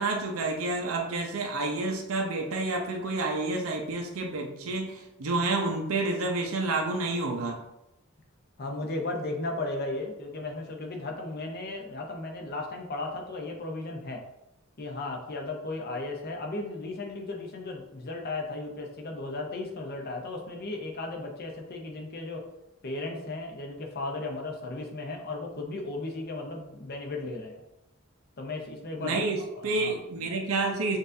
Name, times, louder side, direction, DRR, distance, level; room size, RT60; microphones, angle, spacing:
voice 1, 0.0-7.6 29.0-31.0, right 2 dB, 85° right, 2 dB, 0.6 m, -29 dB
voice 2, 8.6-14.2 14.8-22.4 22.8-27.6 28.4-30.3, left 2 dB, 50° left, 2 dB, 0.7 m, -35 dB
6.4 x 2.5 x 2.6 m, 0.90 s
head